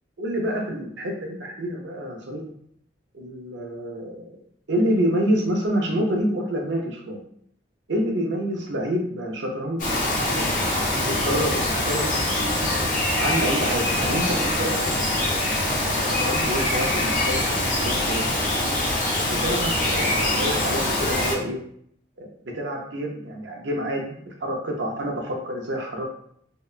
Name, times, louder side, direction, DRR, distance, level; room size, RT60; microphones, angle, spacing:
voice 1, 0.2-2.4 3.1-4.4 4.7-7.2 7.9-9.8 10.3-12.1 13.2-14.9 15.9-18.2 19.2-21.6 22.2-22.3 22.5-26.0, equal, 75° right, 1 dB, 0.5 m, -28 dB
Bird vocalization bird call bird song, 9.8-21.3, left 1 dB, 45° left, 0.6 m, -24 dB
2.7 x 2.2 x 2.3 m, 0.66 s
head